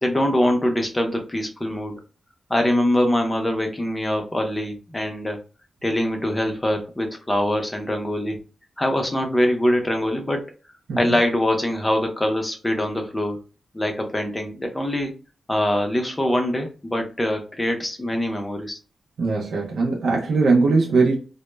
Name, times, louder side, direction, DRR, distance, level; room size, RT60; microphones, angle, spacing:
voice 1, 0.0-2.0 2.5-5.4 5.8-8.4 8.8-10.4 11.0-13.4 13.7-15.1 15.5-18.8, left 1 dB, 15° left, 0.5 m, -23 dB
voice 2, 19.2-21.2, right 3 dB, 85° right, 0.5 m, -20 dB
2.0 x 2.0 x 3.2 m
wide cardioid pair, 110°, 0 cm